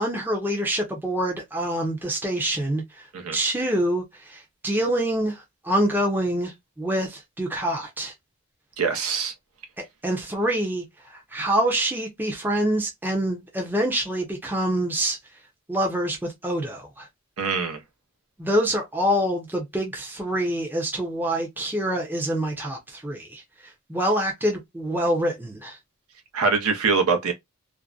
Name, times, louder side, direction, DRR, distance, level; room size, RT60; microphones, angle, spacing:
voice 1, 0.0-2.8 3.3-8.1 10.0-15.2 15.7-17.1 18.4-23.4 23.9-25.8, right 1 dB, 10° right, 0.6 m, -26 dB
voice 2, 8.8-9.3 17.4-17.8 26.3-27.3, right 5 dB, 90° right, 0.6 m, -23 dB
2.5 x 2.1 x 2.3 m
head